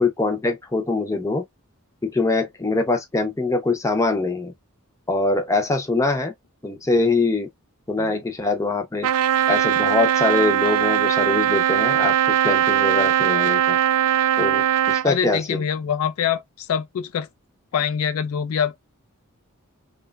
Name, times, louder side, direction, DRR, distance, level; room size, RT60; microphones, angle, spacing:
voice 1, 0.0-1.4 2.0-4.5 5.1-6.3 6.6-7.5 7.9-9.1 9.5-12.2 12.4-13.8 14.4-15.6, left 3 dB, 15° left, 0.5 m, -23 dB
Trumpet, 9.0-15.1, right 11 dB, 75° right, 0.3 m, -20 dB
voice 2, 15.0-17.3 17.7-18.8, left 8 dB, 75° left, 0.3 m, -24 dB
2.8 x 2.2 x 2.2 m
head